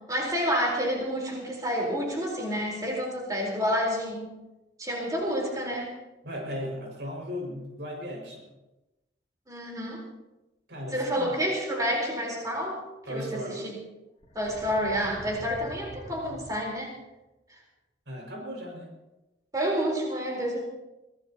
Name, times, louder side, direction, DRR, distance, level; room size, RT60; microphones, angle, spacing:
voice 1, 0.1-4.3 4.8-5.9 9.5-10.0 10.9-12.8 13.1-13.7 14.3-16.9 17.5-17.6 19.5-20.6, equal, 20° right, -2 dB, 4.2 m, -29 dB
voice 2, 6.2-8.5 10.7-11.4 13.1-13.7 18.1-18.9, equal, 85° right, 0 dB, 6.0 m, -36 dB
sound 1, 14.2-17.0, equal, 40° left, 2.6 m, -45 dB
24.5 x 17.5 x 3.0 m, 1.0 s
head